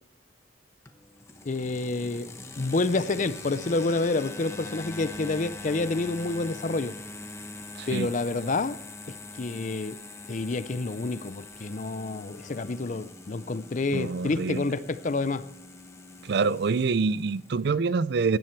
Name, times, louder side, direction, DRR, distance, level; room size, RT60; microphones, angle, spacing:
sound 1, 0.9-17.6, left 2 dB, 15° left, 0.9 m, -43 dB
voice 1, 1.5-2.3 2.6-6.9 7.9-8.8 9.4-10.0 10.3-15.5, left 3 dB, 40° left, 0.5 m, -28 dB
voice 2, 7.8-8.1 13.9-14.6 16.3-18.4, right 4 dB, 55° right, 0.4 m, -26 dB
16.5 x 10.5 x 4.5 m
head